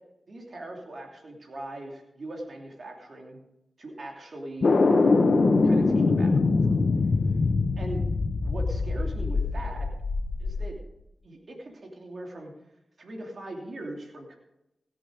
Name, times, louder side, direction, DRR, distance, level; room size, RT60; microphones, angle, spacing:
voice 1, 0.3-3.4 3.8-4.8 5.6-6.7 7.8-8.1 8.4-9.9 10.4-10.8 11.2-12.5 13.0-14.3, right 1 dB, 70° right, 0 dB, 2.8 m, -40 dB
sound 1, 4.6-10.7, left 3 dB, 70° left, 1.2 m, -23 dB
17.0 x 7.7 x 5.0 m, 0.86 s
cardioid pair, 40°, 0 cm